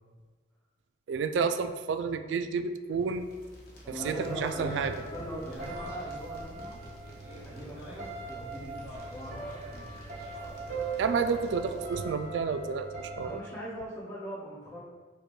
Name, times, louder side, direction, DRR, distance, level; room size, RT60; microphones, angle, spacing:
voice 1, 1.1-3.3 4.1-4.2 4.4-4.9 11.0-12.9 13.2-13.4, right 5 dB, 75° right, 9 dB, 0.3 m, -30 dB
sound 1, 2.9-12.3, equal, 55° left, 0.9 m, -51 dB
voice 2, 3.8-6.8 7.3-9.9 13.2-14.8, equal, 15° left, -9 dB, 1.4 m, -41 dB
Speech, 4.0-6.2 7.0-8.2 8.7-9.8 10.1-10.8, equal, 10° right, 1.5 m, -49 dB
sound 2, 4.0-13.4, right 3 dB, 40° right, 0.6 m, -40 dB
5.0 x 2.2 x 4.5 m, 1.4 s
head